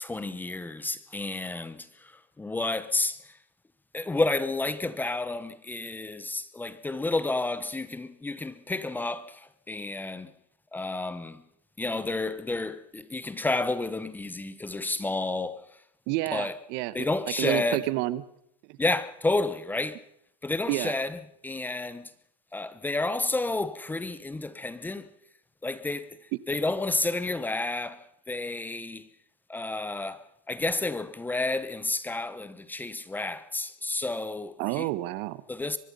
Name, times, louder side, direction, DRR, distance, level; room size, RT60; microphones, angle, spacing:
voice 1, 0.0-2.1 2.4-3.2 3.9-10.3 10.7-11.4 11.8-15.6 16.3-16.5 16.9-17.9 18.8-20.0 20.4-22.1 22.5-25.1 25.6-26.2 26.5-29.1 29.5-34.9 35.5-35.8, left 2 dB, 10° left, 1.0 m, -30 dB
voice 2, 16.1-17.1 17.4-18.2 18.7-18.8 20.7-20.9 34.6-35.4, right 18 dB, 50° right, 1.3 m, -29 dB
23.5 x 21.0 x 5.5 m
supercardioid pair, 125°, 21 cm